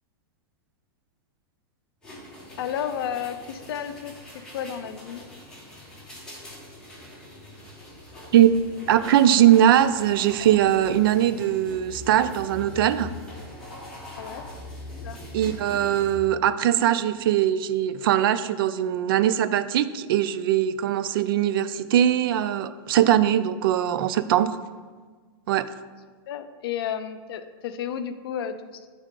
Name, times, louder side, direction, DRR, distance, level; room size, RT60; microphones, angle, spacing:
sound 1, 2.0-16.2, left 1 dB, 5° left, 1.3 m, -42 dB
voice 1, 2.6-4.1 4.5-5.2 14.2-14.4 15.0-15.2 26.3-28.9, left 9 dB, 70° left, 10 dB, 0.5 m, -32 dB
voice 2, 8.9-13.1 15.3-24.6 25.5-25.6, right 11 dB, 60° right, 12 dB, 0.4 m, -21 dB
9.0 x 3.6 x 3.7 m, 1.4 s
supercardioid pair, 155°, 13 cm